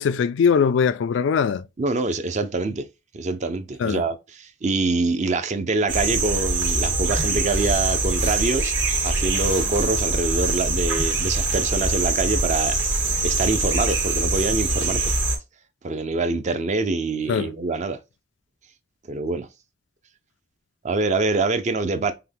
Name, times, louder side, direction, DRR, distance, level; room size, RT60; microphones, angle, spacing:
voice 1, 0.0-1.6 3.8-4.0 17.3-17.5, left 6 dB, 70° left, 0.3 m, -21 dB
voice 2, 1.8-2.9 3.1-8.7 9.0-15.0 15.8-18.0 19.1-19.5 20.8-22.1, right 3 dB, 40° right, 0.5 m, -25 dB
sound 1, 5.9-15.4, right 3 dB, 70° right, 2.0 m, -23 dB
5.6 x 2.2 x 3.3 m
head